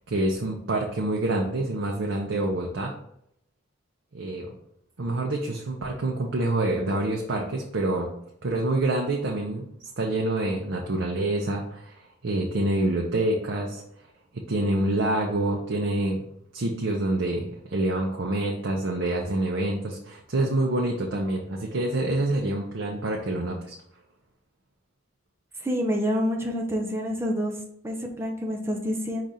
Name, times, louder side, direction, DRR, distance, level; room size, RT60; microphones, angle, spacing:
voice 1, 0.1-2.9 4.1-4.5 5.0-8.1 8.4-9.6 10.0-11.9 12.2-13.8 14.3-16.2 16.5-23.8, right 2 dB, 75° right, -1 dB, 0.6 m, -27 dB
voice 2, 25.6-27.5 27.8-29.2, equal, 15° right, 0 dB, 0.6 m, -27 dB
4.9 x 2.5 x 4.1 m, 0.73 s
head